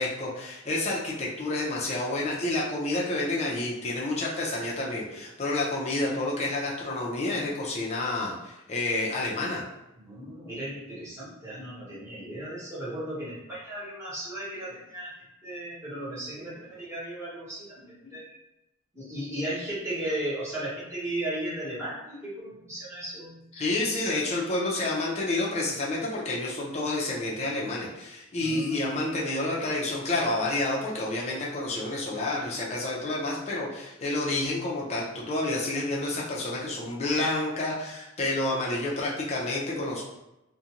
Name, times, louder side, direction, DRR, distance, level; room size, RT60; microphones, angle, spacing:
voice 1, 0.0-9.6 23.5-40.0, left 2 dB, 30° left, -4 dB, 0.6 m, -29 dB
voice 2, 10.0-15.1 15.4-18.4 18.9-23.5 28.4-28.9, right 1 dB, 15° right, -9 dB, 1.0 m, -36 dB
2.5 x 2.2 x 2.9 m, 0.91 s
head